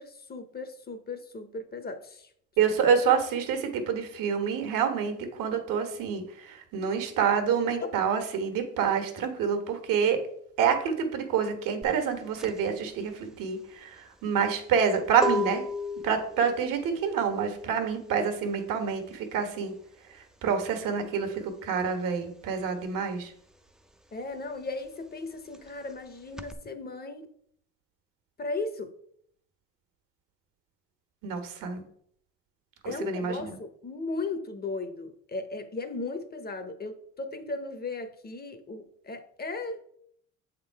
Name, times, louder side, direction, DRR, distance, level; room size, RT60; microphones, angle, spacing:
voice 1, 0.0-2.3 24.1-27.3 28.4-28.9 32.8-39.8, left 3 dB, 30° left, 0.8 m, -36 dB
voice 2, 2.6-10.2 10.6-15.6 16.0-19.7 20.4-23.3 31.2-31.8 32.8-33.6, right 6 dB, 75° right, 1.4 m, -27 dB
sound 1, 11.8-22.0 22.3-26.5, left 2 dB, ahead, 0.4 m, -37 dB
7.0 x 3.7 x 4.6 m
cardioid pair, 100°, 32 cm